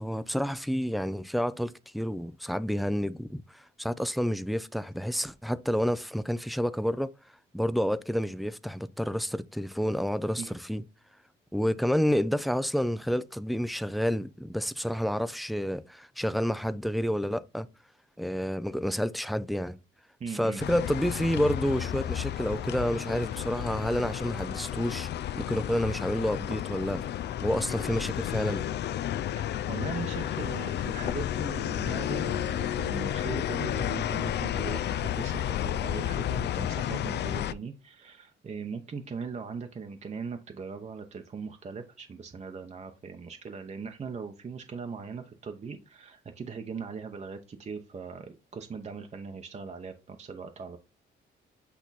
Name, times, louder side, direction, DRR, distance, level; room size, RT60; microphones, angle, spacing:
voice 1, 0.0-7.1 7.5-10.8 11.5-17.7 18.2-19.8 20.3-25.1 25.4-27.0 27.4-28.6, equal, ahead, 0.4 m, -29 dB
voice 2, 20.2-20.6 29.3-50.8, right 5 dB, 35° right, 0.8 m, -40 dB
sound 1, 20.6-37.5, left 11 dB, 60° left, 0.4 m, -32 dB
8.3 x 2.9 x 4.0 m
cardioid pair, 90°, 20 cm